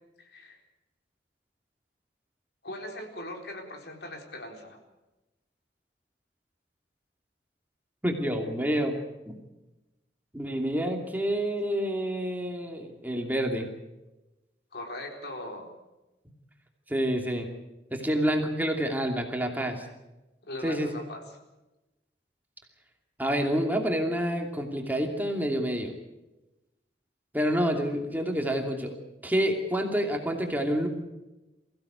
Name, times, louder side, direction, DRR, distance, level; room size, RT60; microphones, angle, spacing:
voice 1, 0.2-0.6 2.6-4.8 14.7-15.7 20.4-21.2, left 1 dB, 65° left, 2 dB, 4.2 m, -40 dB
voice 2, 8.0-8.9 9.3-9.4 10.3-13.7 16.9-17.5 17.9-19.9 20.6-20.9 23.2-25.9 27.3-28.9 29.2-30.9, equal, 10° right, 3 dB, 2.7 m, -28 dB
23.0 x 16.0 x 8.1 m, 1.0 s
head